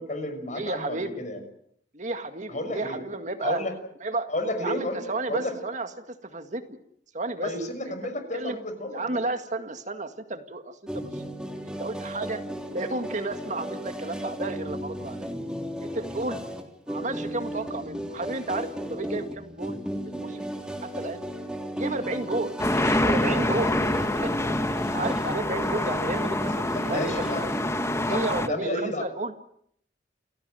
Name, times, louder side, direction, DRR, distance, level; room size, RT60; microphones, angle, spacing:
voice 1, 0.0-1.4 2.5-3.0 3.4-3.7 4.3-5.0 5.3-5.5 7.4-9.2 16.2-16.3 26.7-27.5 28.1-29.1, left 1 dB, 45° left, 8 dB, 6.3 m, -32 dB
voice 2, 0.5-1.3 1.9-3.6 4.0-4.3 4.6-5.9 6.2-6.8 7.1-7.5 7.9-8.0 8.3-8.6 8.9-11.2 11.6-12.4 12.7-15.3 15.8-16.4 16.9-19.8 20.1-20.4 20.8-21.2 21.7-22.5 23.0-27.5 28.0-29.3, right 2 dB, 45° right, 7 dB, 2.0 m, -32 dB
sound 1, 10.9-28.3, equal, 5° right, 3.7 m, -35 dB
sound 2, 22.6-28.5, left 1 dB, 15° left, 1.3 m, -26 dB
29.5 x 17.0 x 9.2 m, 0.69 s
head